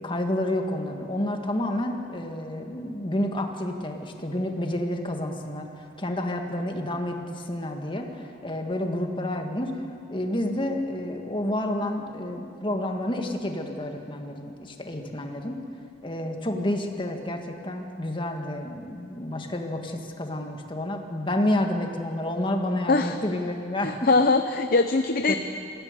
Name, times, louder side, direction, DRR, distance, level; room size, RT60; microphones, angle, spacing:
voice 1, 0.0-9.7 10.1-15.6 16.0-24.1 25.3-25.4, left 1 dB, 25° left, 3 dB, 1.8 m, -29 dB
voice 2, 23.8-25.3, left 3 dB, 50° left, 7 dB, 0.7 m, -21 dB
21.0 x 15.5 x 9.7 m, 2.6 s
head